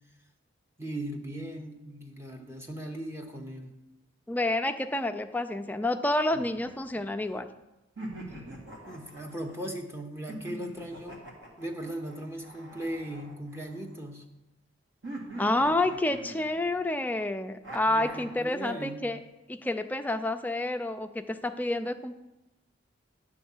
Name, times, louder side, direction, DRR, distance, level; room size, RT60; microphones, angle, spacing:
voice 1, 0.8-3.7 8.9-11.2 11.6-14.2 17.9-19.0, right 1 dB, 15° right, 3 dB, 0.7 m, -38 dB
voice 2, 4.3-7.5 15.4-19.2 19.5-22.1, left 1 dB, 10° left, 7 dB, 0.3 m, -29 dB
sound 1, 6.3-7.4 8.0-9.7 10.3-14.0 15.0-16.8 17.6-18.5, right 1 dB, 65° right, 1.8 m, -44 dB
9.8 x 3.6 x 7.1 m, 0.99 s
head